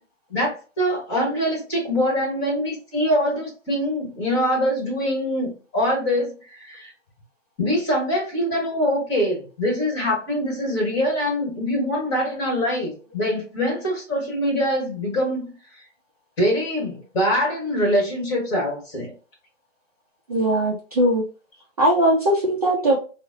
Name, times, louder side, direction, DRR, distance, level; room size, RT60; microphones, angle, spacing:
voice 1, 0.3-6.9 7.6-15.5 16.4-19.1, equal, 25° left, -1 dB, 1.3 m, -24 dB
voice 2, 20.3-21.2 21.8-23.0, right 1 dB, 30° right, -2 dB, 0.4 m, -19 dB
3.7 x 2.1 x 2.5 m, 0.36 s
hypercardioid pair, 155°, 37 cm